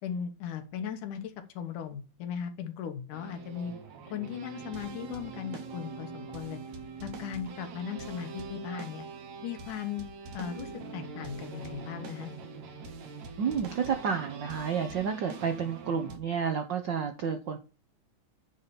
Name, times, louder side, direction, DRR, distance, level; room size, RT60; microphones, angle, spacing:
voice 1, 0.0-3.7 4.1-6.6 7.0-9.1 9.4-10.1 10.3-12.3, left 8 dB, 90° left, 7 dB, 2.8 m, -37 dB
sound 1, 3.1-16.2, right 4 dB, 65° right, 2.7 m, -43 dB
voice 2, 13.4-17.6, right 7 dB, 90° right, 7 dB, 1.0 m, -30 dB
9.6 x 4.1 x 6.9 m, 0.31 s
omnidirectional pair, 3.5 m